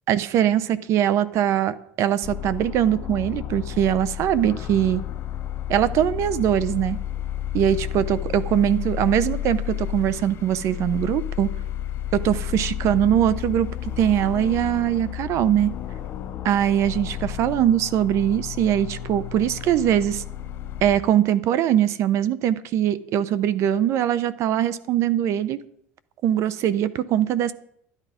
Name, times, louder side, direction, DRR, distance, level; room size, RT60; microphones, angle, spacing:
voice 1, 0.1-5.0 5.7-7.0 7.5-11.5 12.1-13.7 14.0-15.7 16.4-20.2 20.8-25.6 26.2-27.5, right 10 dB, 55° right, 16 dB, 0.7 m, -22 dB
sound 1, 2.2-21.0, left 11 dB, 45° left, 0.7 m, -32 dB
12.0 x 9.9 x 5.0 m, 0.68 s
cardioid pair, 125°, 6 cm